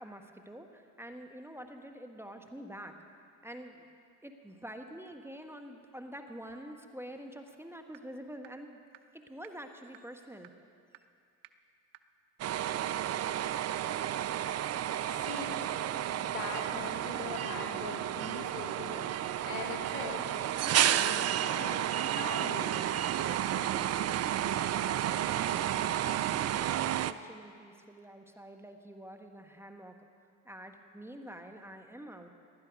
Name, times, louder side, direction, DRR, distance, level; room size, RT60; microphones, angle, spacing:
voice 1, 0.0-3.0 3.4-3.9 4.2-8.8 9.1-10.5 25.0-26.2 26.6-29.9 30.4-32.3, equal, 5° right, 5 dB, 1.3 m, -47 dB
sound 1, 7.5-7.6 7.9-8.0 8.4-8.5 8.9-9.0 9.4-9.5 9.9-10.0 10.4-10.5 10.9-11.0 11.4-11.5 11.9-12.0 12.4-12.5 12.9-13.0 13.4-13.5 13.9-14.0 14.4-14.5 14.9-15.0 15.4-15.5 15.9-16.0 16.4-16.5 16.9-17.0 17.4-17.5 17.9-18.0 18.4-18.5 18.9-19.0 19.4-19.5 19.9-20.0 20.4-20.5 20.9-21.0 21.4-21.5 21.9-22.0 22.4-22.5 22.9-23.0 23.4-23.5 23.9-24.0 24.4-24.5 24.9-25.0 25.4-25.5 25.9-26.0 26.4-26.5, right 18 dB, 80° right, 0.6 m, -51 dB
sound 2, 12.4-27.1, right 11 dB, 40° right, 0.5 m, -31 dB
voice 2, 15.1-15.6 16.1-19.1 19.4-20.2 20.7-21.9 22.2-22.9, left 5 dB, 85° left, 3 dB, 1.5 m, -42 dB
16.0 x 11.5 x 5.2 m, 2.4 s
hypercardioid pair, 65°, 42 cm